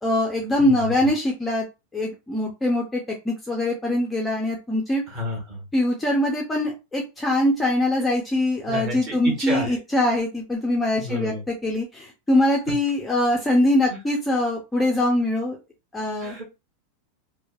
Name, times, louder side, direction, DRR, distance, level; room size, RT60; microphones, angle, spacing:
voice 1, 0.0-1.7 1.9-5.0 5.7-15.6 15.9-16.4, left 1 dB, 5° left, -1 dB, 0.4 m, -23 dB
voice 2, 0.6-0.9 5.1-5.6 8.7-9.8 11.0-11.4 13.9-14.0 16.2-16.5, equal, 30° right, 1 dB, 1.1 m, -30 dB
3.1 x 2.1 x 2.3 m, 0.26 s
supercardioid pair, 170°, 0 cm